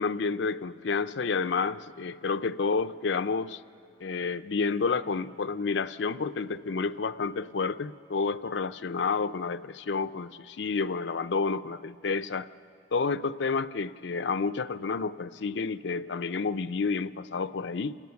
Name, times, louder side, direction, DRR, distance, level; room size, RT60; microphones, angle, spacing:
voice 1, 0.0-3.6 4.0-12.5 12.9-18.0, left 4 dB, 80° left, 12 dB, 0.5 m, -30 dB
28.5 x 19.0 x 7.1 m, 2.5 s
head